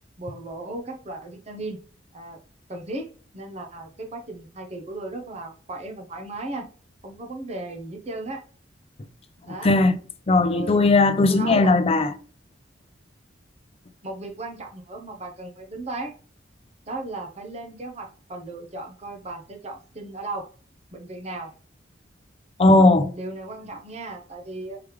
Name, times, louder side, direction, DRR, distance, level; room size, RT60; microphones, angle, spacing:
voice 1, 0.2-1.8 2.1-2.4 2.7-6.7 7.0-8.4 9.4-9.8 10.4-10.9 11.3-11.8 14.0-16.1 16.9-20.4 20.9-21.5 23.1-24.8, right 2 dB, 35° right, 0.8 m, -36 dB
voice 2, 9.5-10.0 10.3-12.1 22.6-23.1, left 2 dB, 30° left, 0.5 m, -18 dB
4.8 x 3.3 x 3.1 m
head